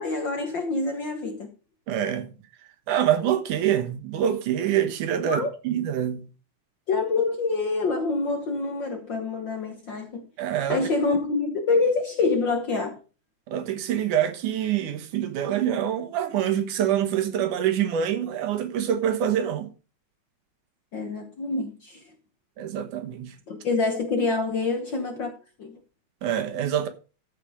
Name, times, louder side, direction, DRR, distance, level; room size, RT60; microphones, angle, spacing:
voice 1, 0.0-1.5 5.2-5.5 6.9-10.2 10.7-13.0 20.9-22.0 23.5-25.3 25.6-25.8, left 3 dB, 55° left, 1.3 m, -26 dB
voice 2, 1.9-2.3 2.9-6.2 10.4-10.8 13.5-19.7 22.6-23.3 26.2-26.9, right 10 dB, 80° right, 2.7 m, -25 dB
14.0 x 5.2 x 4.9 m
omnidirectional pair, 3.6 m